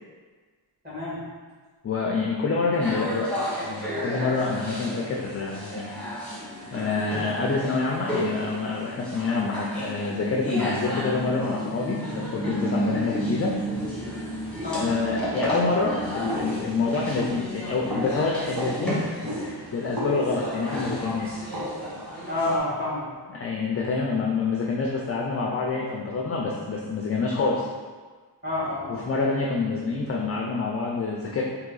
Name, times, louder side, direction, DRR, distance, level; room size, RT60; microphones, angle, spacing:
voice 1, 0.8-1.3 14.6-14.9 22.3-23.1 28.4-29.1, left 2 dB, 20° right, -9 dB, 1.5 m, -28 dB
voice 2, 1.8-6.0 6.7-13.6 14.7-21.4 23.3-27.7 28.9-31.4, left 4 dB, 35° left, -2 dB, 0.4 m, -27 dB
sound 1, 2.8-22.6, equal, ahead, 1.0 m, -32 dB
sound 2, 16.3-22.0, equal, 55° right, 1.2 m, -34 dB
3.7 x 2.8 x 3.9 m, 1.5 s
wide cardioid pair, 130°, 44 cm